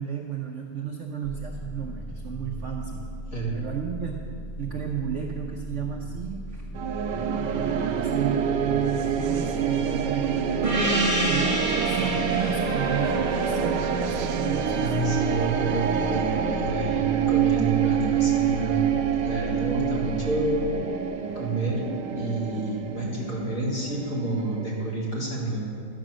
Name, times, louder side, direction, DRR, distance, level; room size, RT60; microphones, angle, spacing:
voice 1, 0.0-3.0 3.5-4.2 4.6-6.7 7.6-10.9 11.3-14.9, right 8 dB, 55° right, 1 dB, 0.9 m, -33 dB
sound 1, 1.2-20.8, right 1 dB, 20° left, 0.8 m, -38 dB
sound 2, 6.7-24.9, right 8 dB, 80° right, 1.3 m, -27 dB
Gong, 10.6-15.6, right 1 dB, 20° right, 1.3 m, -29 dB
voice 2, 14.8-18.9 19.2-20.6 21.3-25.6, right 2 dB, 40° left, -5 dB, 3.0 m, -29 dB
12.0 x 9.0 x 6.3 m, 2.4 s
omnidirectional pair, 1.9 m